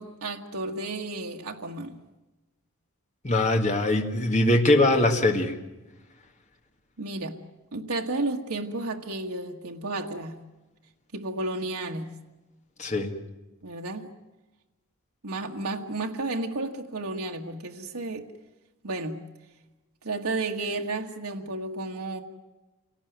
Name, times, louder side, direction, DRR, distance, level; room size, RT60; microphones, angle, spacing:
voice 1, 0.0-2.0 7.0-7.4 7.7-10.3 11.1-12.1 13.6-14.1 15.2-18.3 18.8-19.2 20.0-22.2, right 2 dB, 80° right, 1 dB, 1.6 m, -32 dB
voice 2, 3.2-5.6 12.8-13.1, left 1 dB, 30° left, 3 dB, 2.0 m, -22 dB
27.5 x 18.5 x 9.4 m, 1.1 s
head